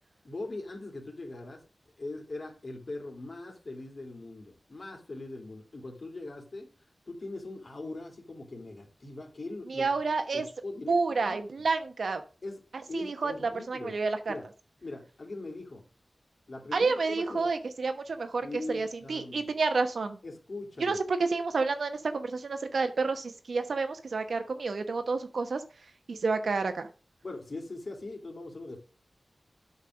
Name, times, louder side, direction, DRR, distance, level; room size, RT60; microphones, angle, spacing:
voice 1, 0.2-1.6 2.0-6.7 7.1-9.9 10.3-11.5 12.4-12.6 12.9-13.9 14.3-14.4 14.8-15.8 16.5-17.5 18.4-19.5 20.2-21.0 27.2-28.8, left 2 dB, 60° left, 2 dB, 3.0 m, -41 dB
voice 2, 9.7-10.5 10.9-12.2 12.9-13.3 13.7-14.3 16.7-20.2 20.8-25.6 26.1-26.9, right 4 dB, 85° right, 8 dB, 1.2 m, -29 dB
8.2 x 5.5 x 6.3 m, 0.35 s
wide cardioid pair, 65°, 0 cm